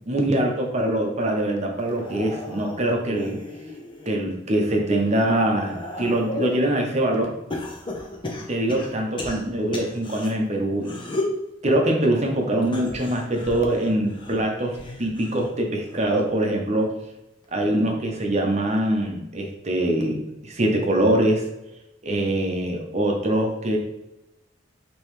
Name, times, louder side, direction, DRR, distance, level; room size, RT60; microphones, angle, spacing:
voice 1, 0.1-3.4 4.1-7.3 8.3-11.0 11.6-16.9 17.5-21.4 22.0-23.8, right 1 dB, 35° right, 1 dB, 0.8 m, -23 dB
sound 1, 1.8-4.2 4.7-6.6 7.5-10.3 10.8-11.4 12.6-15.5 15.9-16.3 17.4-17.5, left 1 dB, 25° left, 0.7 m, -35 dB
5.2 x 3.0 x 3.1 m, 0.91 s
head